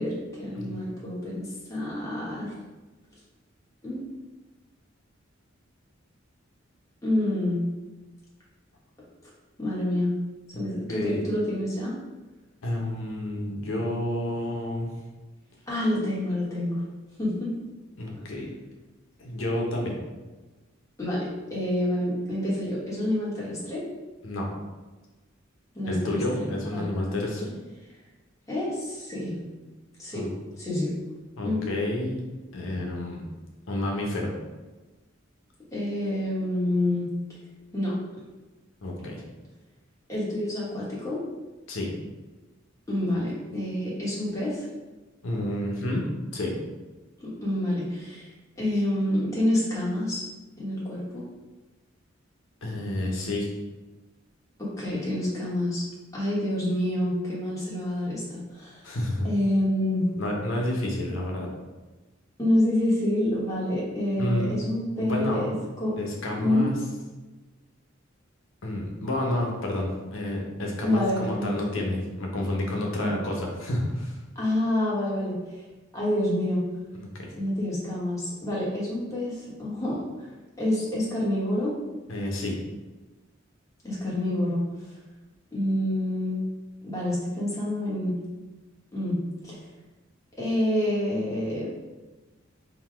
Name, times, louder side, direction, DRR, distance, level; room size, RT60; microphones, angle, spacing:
voice 1, 0.0-2.5 3.8-4.0 7.0-7.6 9.6-10.1 10.5-11.9 15.7-16.8 17.2-17.5 21.0-23.8 25.7-26.2 26.7-26.8 28.5-29.4 30.0-30.9 31.4-31.7 35.7-37.1 37.7-38.0 40.1-41.2 42.9-44.6 47.2-48.3 48.6-50.2 50.6-51.3 54.6-55.8 56.1-58.8 59.2-60.1 62.4-66.0 66.3-66.7 70.8-71.5 73.0-73.2 74.3-75.6 75.9-76.6 77.3-80.3 80.6-81.7 83.8-84.6 85.5-86.4 86.8-88.2 88.9-89.6 90.4-91.7, left 1 dB, 15° left, -7 dB, 1.2 m, -27 dB
voice 2, 0.5-0.8 10.5-11.2 12.6-14.9 18.0-18.5 19.2-20.0 24.2-24.5 25.9-27.5 30.1-30.3 31.4-32.2 32.5-33.2 33.7-34.3 38.8-39.2 41.7-41.9 45.2-46.1 46.3-46.6 52.6-53.5 58.8-59.3 60.1-61.5 64.2-64.5 65.0-65.5 66.0-66.8 68.6-74.2 77.0-77.3 82.1-82.6, left 1 dB, 80° left, -1 dB, 0.8 m, -30 dB
3.9 x 2.2 x 4.5 m, 1.2 s
head